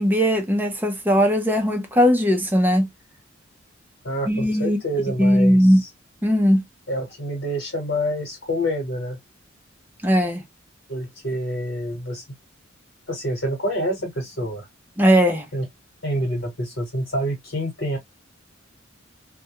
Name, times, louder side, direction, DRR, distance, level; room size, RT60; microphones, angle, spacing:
voice 1, 0.0-2.9 4.3-4.8 5.2-5.8 6.2-6.6 10.0-10.4 15.0-15.5, equal, 10° right, 0.5 m, -18 dB
voice 2, 4.0-5.6 6.9-9.2 10.9-12.2 13.1-14.7 15.5-15.6 16.0-18.0, equal, 70° left, 1.1 m, -27 dB
2.2 x 2.2 x 2.9 m
head